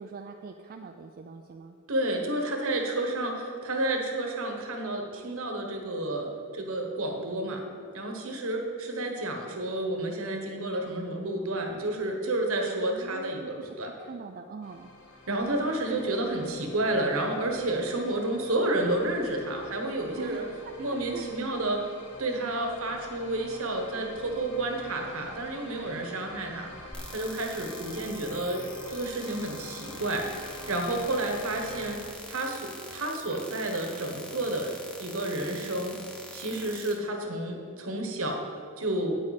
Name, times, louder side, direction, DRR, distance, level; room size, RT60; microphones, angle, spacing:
voice 1, 0.0-1.7 12.9-14.9 20.2-21.3, right 4 dB, 40° right, 5 dB, 0.4 m, -43 dB
voice 2, 1.9-6.3 6.5-7.6 7.9-13.9 15.3-20.4 20.8-21.8 22.2-26.7 27.1-28.6 28.9-35.9 36.3-39.2, right 1 dB, 65° right, 3 dB, 1.2 m, -30 dB
sound 1, 14.6-32.0, left 2 dB, 85° left, 1.0 m, -48 dB
sound 2, 26.9-36.9, equal, 5° left, 0.9 m, -44 dB
9.6 x 8.6 x 4.1 m, 2.4 s
head